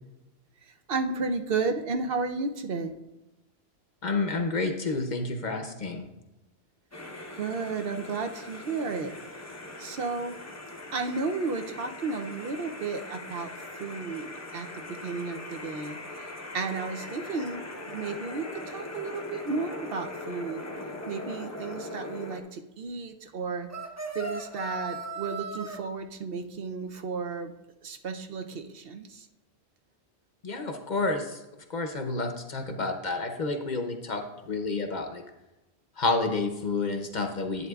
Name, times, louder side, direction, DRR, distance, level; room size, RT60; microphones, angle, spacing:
voice 1, 0.6-2.9 7.4-9.2 9.8-10.4 10.9-20.6 21.1-23.7 24.1-27.5 27.8-29.3, right 4 dB, 65° right, 6 dB, 0.8 m, -33 dB
voice 2, 4.0-6.1 30.4-31.4 31.7-35.2 36.0-37.7, left 3 dB, 50° left, 5 dB, 0.8 m, -30 dB
sound 1, 6.9-22.4, left 2 dB, 15° left, 0.7 m, -41 dB
sound 2, 23.7-25.8, right 3 dB, 20° right, 0.6 m, -36 dB
11.0 x 8.2 x 2.3 m, 0.98 s
omnidirectional pair, 1.1 m